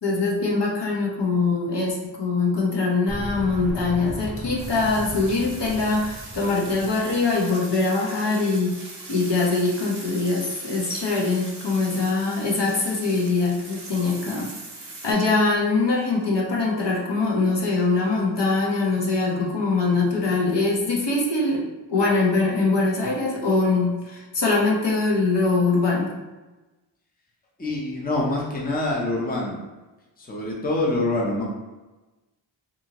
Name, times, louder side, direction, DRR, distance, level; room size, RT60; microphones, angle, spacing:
voice 1, 0.0-14.5 15.0-21.6 21.9-26.1, left 3 dB, 60° left, -3 dB, 0.8 m, -23 dB
sound 1, 3.1-7.4, equal, 85° left, 1.3 m, -36 dB
sound 2, 4.6-15.1, right 2 dB, 35° right, 0.7 m, -41 dB
voice 2, 27.6-29.6 30.2-31.4, left 2 dB, 20° left, -3 dB, 0.7 m, -25 dB
2.7 x 2.6 x 2.8 m, 1.1 s
cardioid pair, 50°, 47 cm